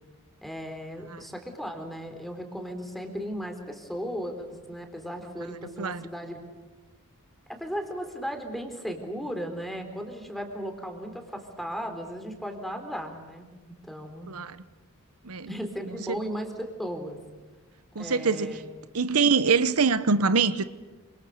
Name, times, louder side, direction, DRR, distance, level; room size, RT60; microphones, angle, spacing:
voice 1, 0.4-6.4 7.5-14.3 15.5-17.2 18.0-18.6, equal, ahead, 3.8 m, -36 dB
voice 2, 17.9-18.6 18.9-20.6, right 5 dB, 80° right, 1.0 m, -24 dB
27.0 x 26.5 x 6.6 m
head